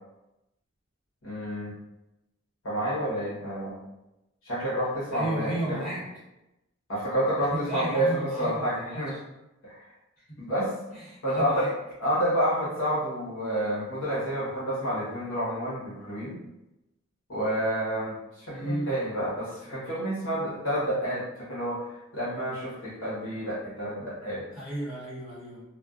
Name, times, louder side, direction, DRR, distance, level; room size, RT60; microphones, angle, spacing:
voice 1, 1.2-1.7 2.6-3.8 4.4-5.8 6.9-9.2 9.6-9.8 10.4-10.7 11.2-11.7 12.0-16.4 17.3-24.4, equal, 80° left, -8 dB, 1.0 m, -29 dB
voice 2, 5.1-6.0 7.5-9.2 10.3-10.4 10.9-11.7 18.5-19.0 24.5-25.6, right 1 dB, 40° left, -9 dB, 1.2 m, -33 dB
2.4 x 2.3 x 2.4 m, 0.94 s
head